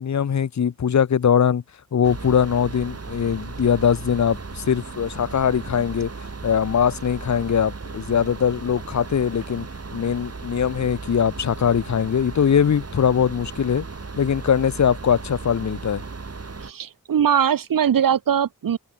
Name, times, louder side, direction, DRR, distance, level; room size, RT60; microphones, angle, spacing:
voice 1, 0.0-1.6 1.9-6.1 6.4-9.7 9.9-13.8 14.2-16.0, left 7 dB, 55° left, 0.6 m, -21 dB
sound 1, 2.0-16.7, right 4 dB, 45° right, 1.7 m, -36 dB
voice 2, 16.6-18.8, right 8 dB, 80° right, 0.6 m, -21 dB
open air
wide cardioid pair, 55°, 33 cm